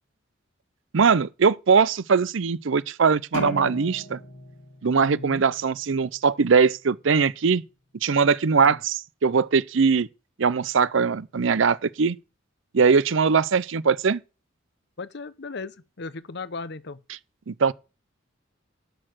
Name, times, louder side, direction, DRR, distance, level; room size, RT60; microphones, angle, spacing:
voice 1, 0.9-4.2 4.8-7.6 8.0-10.1 10.4-12.2 12.7-14.2 17.5-17.7, right 5 dB, 70° right, 0.6 m, -21 dB
sound 1, 3.3-5.9, right 1 dB, 75° left, 2.6 m, -36 dB
voice 2, 5.1-5.4 8.6-8.8 15.0-17.0, left 4 dB, 55° left, 0.8 m, -36 dB
11.5 x 6.6 x 6.2 m
head